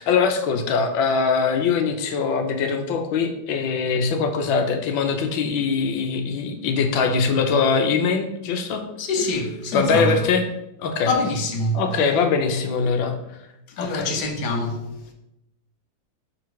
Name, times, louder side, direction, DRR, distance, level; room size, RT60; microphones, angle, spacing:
voice 1, 0.0-8.8 9.7-10.4 10.8-11.1 11.7-13.2 13.8-14.1, left 5 dB, 80° left, 1.5 m, -22 dB
voice 2, 9.0-10.3 11.1-11.8 13.7-14.9, left 2 dB, 65° left, 1.5 m, -25 dB
5.7 x 3.8 x 4.6 m
omnidirectional pair, 2.1 m